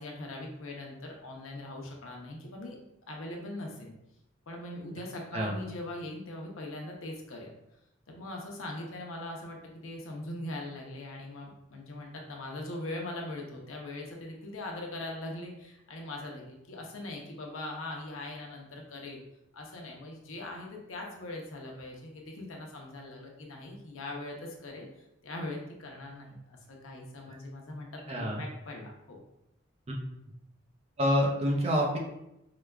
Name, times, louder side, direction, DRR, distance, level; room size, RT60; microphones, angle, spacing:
voice 1, 0.0-2.8 3.1-3.9 4.5-7.5 8.1-19.2 19.5-29.2, left 1 dB, 85° left, 0 dB, 0.7 m, -41 dB
voice 2, 28.1-28.4 29.9-30.0 31.0-32.0, equal, 30° right, 0 dB, 0.5 m, -27 dB
4.8 x 2.2 x 2.3 m, 0.85 s
head